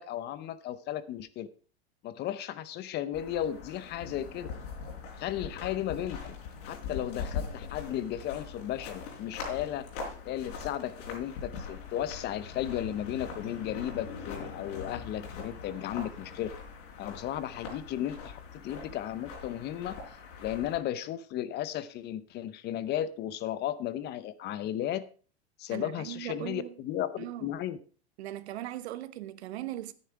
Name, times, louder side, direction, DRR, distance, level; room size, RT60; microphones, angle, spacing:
voice 1, 0.0-1.5 2.0-4.5 5.2-6.4 6.7-9.9 10.2-16.5 17.0-20.0 20.4-25.0 25.6-27.8, left 11 dB, 30° left, 0.7 m, -35 dB
sound 1, 3.1-20.8, left 5 dB, 65° left, 4.3 m, -42 dB
voice 2, 25.7-26.8 27.2-27.5 28.2-29.9, right 14 dB, 70° right, 1.1 m, -39 dB
10.0 x 9.6 x 4.7 m
hypercardioid pair, 130°, 33 cm